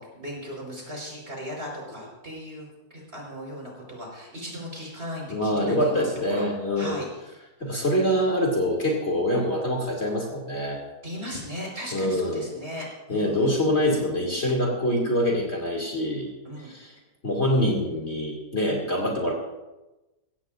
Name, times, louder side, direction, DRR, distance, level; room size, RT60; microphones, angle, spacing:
voice 1, 0.0-6.4 6.8-7.1 11.0-13.6 16.4-16.7, equal, 35° right, -2 dB, 5.1 m, -37 dB
voice 2, 5.3-7.0 7.6-10.8 11.9-12.4 13.1-16.3 16.6-16.9 17.2-19.3, equal, 40° left, -1 dB, 2.9 m, -25 dB
22.5 x 16.5 x 2.6 m, 1.0 s
omnidirectional pair, 1.8 m